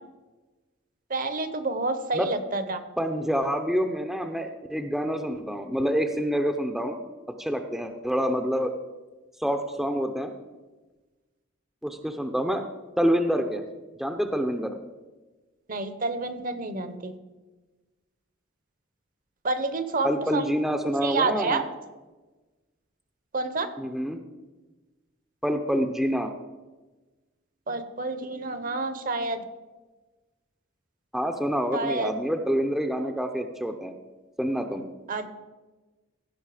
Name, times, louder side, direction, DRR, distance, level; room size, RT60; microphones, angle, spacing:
voice 1, 1.1-2.8 15.7-17.1 19.4-20.4 21.0-21.6 23.3-23.7 27.7-29.4 31.7-32.1 35.1-35.3, right 3 dB, 40° right, 11 dB, 0.8 m, -29 dB
voice 2, 3.0-7.0 7.4-8.7 9.4-10.3 11.8-12.7 13.0-13.6 14.0-14.7 20.0-21.6 23.8-24.2 25.4-26.3 31.1-33.9 34.4-34.9, equal, ahead, 5 dB, 0.5 m, -27 dB
16.0 x 5.5 x 4.9 m, 1.2 s
head